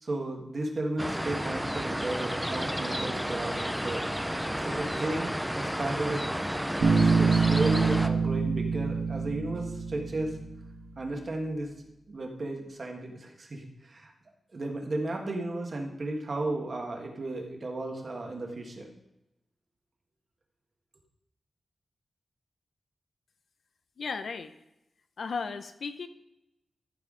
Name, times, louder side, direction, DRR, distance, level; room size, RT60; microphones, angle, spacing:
voice 1, 0.0-4.0 4.6-6.3 6.9-10.4 11.0-11.7 12.1-14.1 14.5-18.9, right 2 dB, 40° right, 1 dB, 1.6 m, -34 dB
sound 1, 1.0-8.1, equal, 5° right, 0.5 m, -32 dB
Bass guitar, 6.8-10.5, right 5 dB, 90° right, 1.4 m, -26 dB
voice 2, 24.0-24.5 25.2-26.1, left 5 dB, 65° left, 9 dB, 0.6 m, -35 dB
14.0 x 5.6 x 3.8 m, 0.89 s
wide cardioid pair, 170°, 0 cm